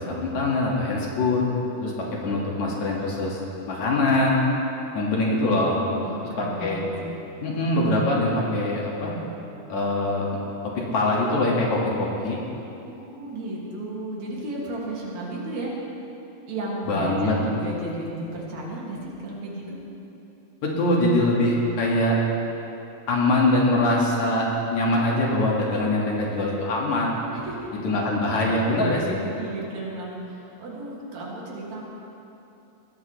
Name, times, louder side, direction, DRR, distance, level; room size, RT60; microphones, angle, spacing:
voice 1, 0.0-1.5 1.8-1.9 2.2-3.4 3.7-4.4 4.9-5.8 6.4-6.8 7.4-9.1 9.7-10.3 10.8-12.4 16.9-17.4 20.6-22.2 23.1-27.2 27.8-29.2, left 2 dB, 70° left, -3 dB, 3.3 m, -23 dB
voice 2, 6.0-7.2 12.9-15.7 16.5-19.8 27.3-27.7 29.4-31.8, right 1 dB, 65° right, -5 dB, 3.7 m, -34 dB
22.0 x 15.0 x 3.3 m, 2.9 s
omnidirectional pair, 3.5 m